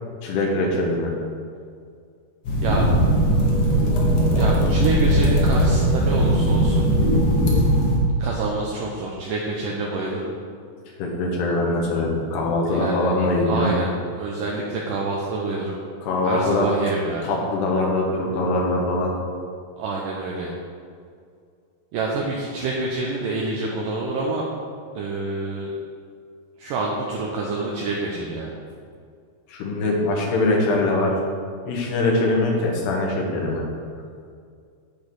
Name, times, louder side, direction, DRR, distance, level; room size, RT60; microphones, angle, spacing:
voice 1, 0.2-1.1 11.0-13.7 16.0-16.7 17.2-19.1 29.5-31.2 31.7-33.7, left 2 dB, 90° left, -1 dB, 3.4 m, -22 dB
sound 1, 2.5-8.0, equal, 60° left, 1.9 m, -19 dB
voice 2, 4.4-6.9 8.2-10.3 12.7-13.1 13.5-13.9 14.2-15.8 16.2-17.4 19.8-20.5 21.9-24.5 25.0-25.8 26.6-28.5, right 3 dB, 75° right, -2 dB, 2.1 m, -27 dB
8.7 x 7.5 x 4.7 m, 2.2 s
omnidirectional pair, 4.6 m